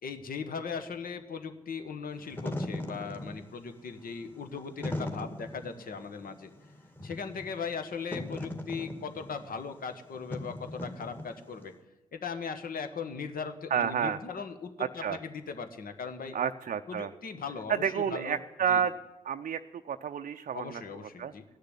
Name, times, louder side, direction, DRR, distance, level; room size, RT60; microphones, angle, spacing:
voice 1, 0.0-6.5 7.0-11.7 12.1-16.4 16.9-18.4 18.7-18.8 20.5-21.4, left 5 dB, 55° left, 8 dB, 1.4 m, -38 dB
Wind / Fire, 2.1-11.7, left 1 dB, 10° left, 2.0 m, -39 dB
voice 2, 13.7-14.2 14.8-15.2 16.3-17.1 17.7-18.9 19.2-20.8 21.2-21.3, right 8 dB, 45° right, 7 dB, 0.6 m, -30 dB
15.5 x 6.6 x 9.8 m, 1.1 s
hypercardioid pair, 45°, 18 cm